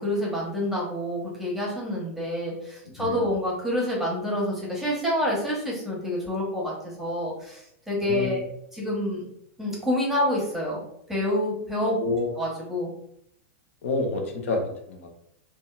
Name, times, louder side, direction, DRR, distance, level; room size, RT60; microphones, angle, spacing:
voice 1, 0.0-6.7 7.0-8.4 8.7-9.2 9.6-10.8 11.1-12.0 12.4-12.9, left 1 dB, 5° right, -4 dB, 0.9 m, -27 dB
voice 2, 8.0-8.4 11.9-12.3 13.8-15.1, left 2 dB, 65° left, 2 dB, 0.6 m, -28 dB
2.7 x 2.2 x 2.3 m, 0.72 s
hypercardioid pair, 100°, 8 cm